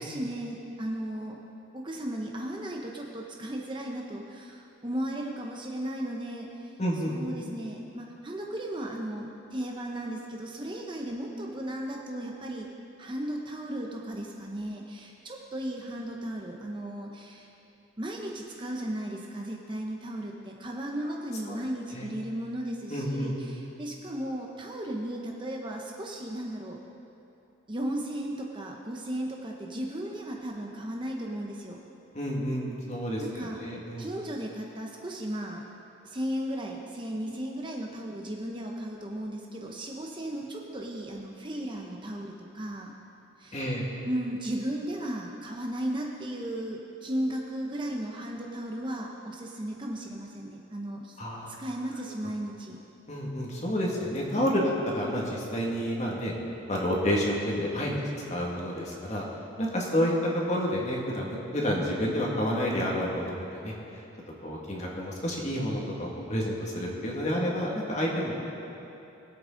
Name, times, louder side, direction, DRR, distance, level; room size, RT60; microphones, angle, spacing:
voice 1, 0.0-1.4 1.7-6.8 7.1-12.7 13.0-17.5 18.0-26.8 27.7-31.8 33.2-33.6 34.0-35.6 36.0-42.9 43.4-43.6 44.0-51.2 51.5-52.8, right 1 dB, 25° right, 0 dB, 0.9 m, -35 dB
voice 2, 6.8-7.2 21.5-21.6 21.9-22.1 22.9-23.4 32.1-34.1 43.5-43.9 51.2-51.5 53.1-56.3 56.7-58.0 58.3-59.2 59.6-63.7 64.4-68.4, equal, 35° left, -3 dB, 2.1 m, -29 dB
22.5 x 8.6 x 3.9 m, 2.9 s
head